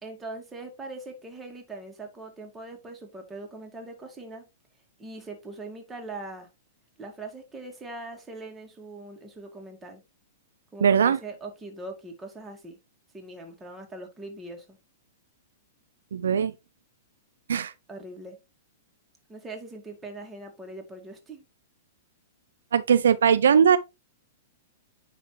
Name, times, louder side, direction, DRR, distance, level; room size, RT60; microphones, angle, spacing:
voice 1, 0.0-4.5 5.0-6.5 7.0-10.0 10.7-12.8 13.1-14.8 17.9-18.4 19.3-21.4, right 2 dB, 15° right, 2.1 m, -41 dB
voice 2, 10.8-11.2 16.1-16.5 17.5-17.7 22.7-23.8, right 7 dB, 80° right, 0.4 m, -20 dB
10.0 x 3.4 x 3.2 m
hypercardioid pair, 120°, 0 cm